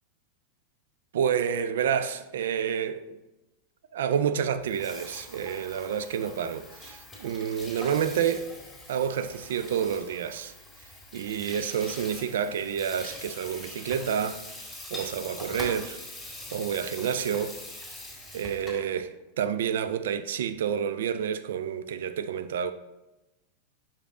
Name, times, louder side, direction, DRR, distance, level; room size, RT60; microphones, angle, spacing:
voice 1, 1.1-3.2 3.9-8.5 8.9-10.5 11.1-14.4 14.9-16.0 16.5-17.6 18.3-22.7, right 8 dB, 60° right, 0.3 m, -29 dB
Water tap faucet / Sink (filling or washing), 4.6-18.9, left 1 dB, 5° left, 1.9 m, -43 dB
5.6 x 5.0 x 3.6 m
figure-of-eight pair, 90°, 0 cm